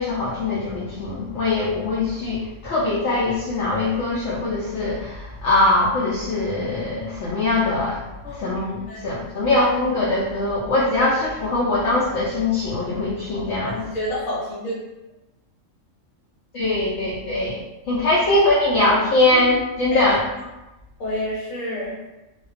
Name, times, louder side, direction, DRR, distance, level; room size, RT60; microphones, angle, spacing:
voice 1, 0.0-13.8 16.5-20.2, left 2 dB, 70° left, -7 dB, 0.8 m, -22 dB
voice 2, 8.2-8.6 8.9-9.1 13.6-14.8 19.9-20.0 21.0-21.9, equal, 90° left, -7 dB, 1.0 m, -29 dB
2.4 x 2.1 x 2.4 m, 0.99 s
omnidirectional pair, 1.4 m